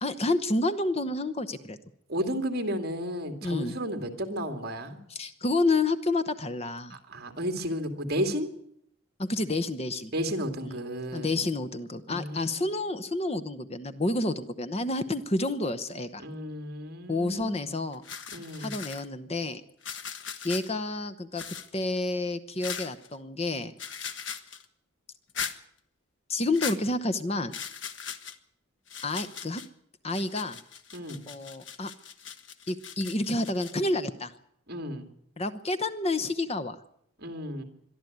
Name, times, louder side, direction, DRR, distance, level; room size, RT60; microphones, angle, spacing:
voice 1, 0.0-1.8 3.4-3.8 5.1-7.0 9.2-10.1 10.7-10.8 11.1-16.2 17.1-18.0 18.6-19.6 20.4-21.4 21.7-23.7 26.3-27.5 29.0-29.6 30.0-30.6 31.3-31.9 32.7-34.3 35.4-36.8, left 2 dB, 30° left, 11 dB, 0.9 m, -29 dB
voice 2, 2.1-5.0 6.9-8.5 10.1-11.3 12.1-12.7 16.2-17.7 18.3-18.8 30.9-31.2 34.7-35.1 37.2-37.6, equal, 45° right, 7 dB, 2.5 m, -33 dB
sound 1, 17.4-17.6 17.9-19.1 19.8-20.7 21.4-22.0 22.6-23.1 23.8-24.7 25.3-25.6 26.5-26.8 27.5-28.4 28.9-29.7 30.1-33.7, left 7 dB, 60° left, 1.4 m, -39 dB
22.5 x 13.0 x 9.4 m, 0.72 s
head